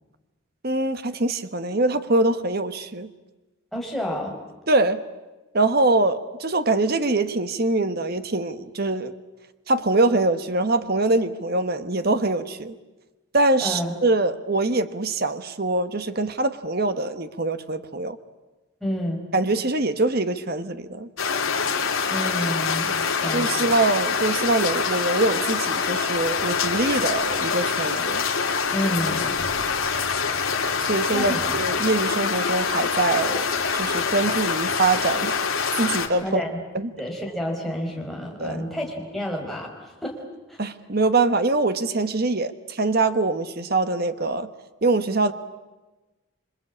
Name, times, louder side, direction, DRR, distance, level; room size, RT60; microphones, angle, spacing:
voice 1, 0.6-3.1 4.7-5.0 5.5-9.1 9.7-12.7 13.3-18.2 19.3-21.1 23.3-28.2 30.9-35.4 35.8-36.4 36.7-36.9 38.4-38.7 40.6-44.5 44.8-45.3, right 2 dB, 45° right, 10 dB, 1.2 m, -23 dB
voice 2, 3.7-4.4 13.6-13.9 18.8-19.3 22.1-23.7 28.7-29.3 31.1-31.5 36.2-36.6 37.0-40.2 40.5-40.6, equal, ahead, -1 dB, 5.1 m, -29 dB
sound 1, 21.2-36.1, left 5 dB, 75° left, 3.2 m, -25 dB
26.5 x 25.5 x 8.6 m, 1.1 s
head